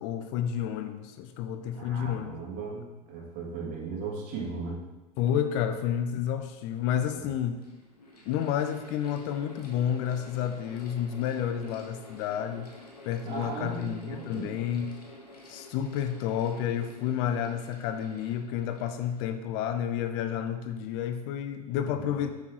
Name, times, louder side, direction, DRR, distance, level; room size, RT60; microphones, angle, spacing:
voice 1, 0.0-2.4 5.2-7.6 8.3-12.7 13.1-14.9 15.5-22.3, left 9 dB, 50° left, 8 dB, 0.6 m, -30 dB
voice 2, 1.7-4.8 13.2-14.6 21.8-22.1, right 4 dB, 45° right, -4 dB, 2.7 m, -37 dB
Mechanical fan, 7.3-19.9, left 2 dB, 75° left, 1.5 m, -50 dB
8.3 x 6.1 x 3.2 m, 1.1 s
figure-of-eight pair, 85°, 20 cm